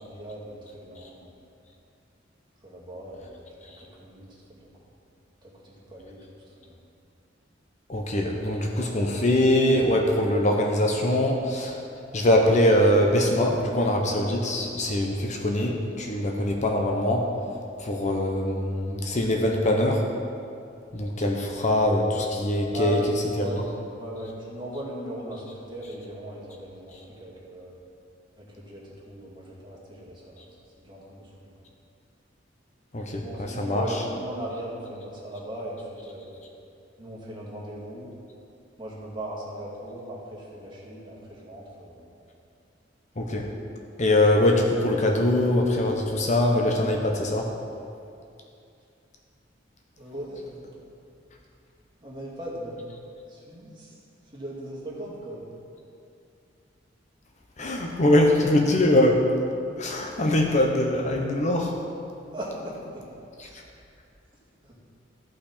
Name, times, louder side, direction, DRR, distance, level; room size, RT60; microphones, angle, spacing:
voice 1, 0.0-1.3 2.6-4.7 5.4-6.2 6.6-6.8 22.7-23.7 23.9-27.8 28.4-30.4 30.8-31.5 33.2-36.3 37.0-38.1 38.8-42.0 50.0-50.7 52.0-52.8 53.3-54.0 54.3-55.4 62.3-63.0 63.4-63.6 64.6-64.7, right 1 dB, 25° right, -6 dB, 2.2 m, -38 dB
voice 2, 7.9-11.8 12.1-17.3 17.8-20.0 20.9-23.0 23.4-23.5 32.9-33.8 43.2-43.5 44.0-47.5 57.6-59.2 59.8-61.7, left 1 dB, 40° left, 1 dB, 0.8 m, -23 dB
14.0 x 5.7 x 4.3 m, 2.5 s
head